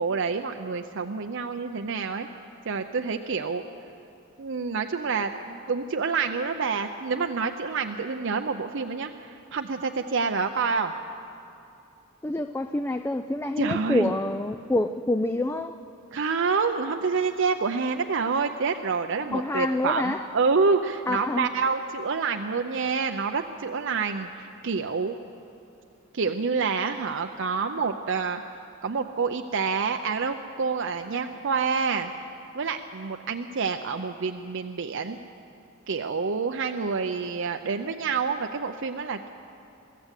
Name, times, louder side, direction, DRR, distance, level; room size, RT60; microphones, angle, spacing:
voice 1, 0.0-2.3 2.7-3.6 4.4-10.9 13.6-14.1 16.1-25.1 26.1-28.4 28.8-32.1 32.5-35.2 35.9-39.3, right 5 dB, 60° right, 6 dB, 0.6 m, -27 dB
voice 2, 12.2-15.8 19.3-20.2 21.1-21.5, left 1 dB, 10° left, 9 dB, 0.4 m, -27 dB
23.5 x 14.0 x 8.3 m, 2.7 s
head